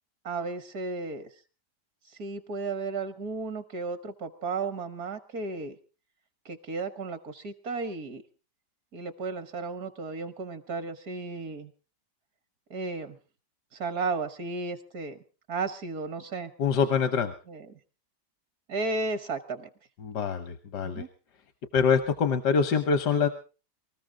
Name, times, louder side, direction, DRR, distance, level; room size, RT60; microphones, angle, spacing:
voice 1, 0.2-1.3 2.2-5.7 6.4-8.2 8.9-11.7 12.7-13.2 13.7-15.2 15.5-16.5 17.5-17.7 18.7-19.7 20.8-21.1, right 3 dB, 65° right, 11 dB, 1.5 m, -34 dB
voice 2, 16.6-17.3 20.0-21.0 21.7-23.3, left 6 dB, 80° left, 9 dB, 1.6 m, -25 dB
24.0 x 14.0 x 3.8 m, 0.36 s
omnidirectional pair, 1.8 m